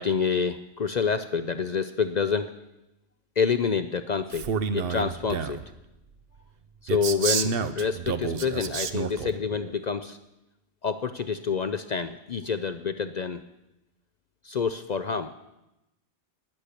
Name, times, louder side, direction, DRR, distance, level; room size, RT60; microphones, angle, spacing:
voice 1, 0.0-2.5 3.4-4.5 4.7-5.6 6.8-10.2 10.8-13.4 14.4-15.3, left 6 dB, 50° left, 11 dB, 0.5 m, -27 dB
Male speech man speaking, 4.3-5.7 6.9-9.3, right 6 dB, 55° right, 0.9 m, -29 dB
11.0 x 10.5 x 8.2 m, 0.94 s
omnidirectional pair, 1.2 m